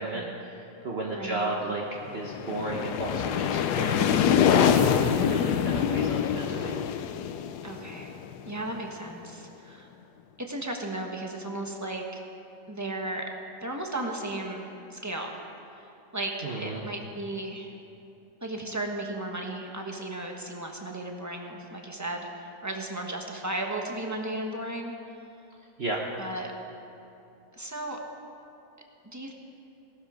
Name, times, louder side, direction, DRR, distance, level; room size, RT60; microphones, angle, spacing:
voice 1, 0.0-1.8 2.1-6.7 16.4-16.8 25.8-26.0, right 2 dB, 45° right, -2 dB, 1.3 m, -33 dB
voice 2, 1.1-1.5 7.6-8.2 8.4-9.9 10.4-12.2 12.7-13.3 13.6-15.3 15.7-17.7 18.4-25.0 26.2-26.5 27.5-28.0 29.0-29.3, right 1 dB, 10° right, 1 dB, 1.2 m, -35 dB
sound 1, 2.0-8.8, left 8 dB, 90° left, 1.2 m, -25 dB
18.5 x 12.5 x 5.0 m, 2.7 s
omnidirectional pair, 1.7 m